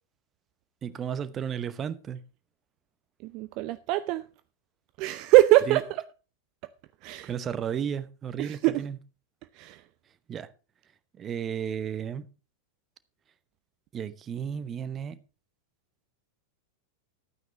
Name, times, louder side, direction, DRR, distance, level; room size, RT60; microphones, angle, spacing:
voice 1, 0.8-2.2 5.7-5.8 7.2-9.0 10.3-10.5 11.1-12.3 13.9-15.2, right 8 dB, 25° right, 0.9 m, -33 dB
voice 2, 3.2-4.2 5.0-5.9 7.0-7.3 8.4-8.8 9.5-9.8, right 17 dB, 40° right, 0.5 m, -22 dB
12.5 x 9.3 x 4.2 m
figure-of-eight pair, 90°, 0 cm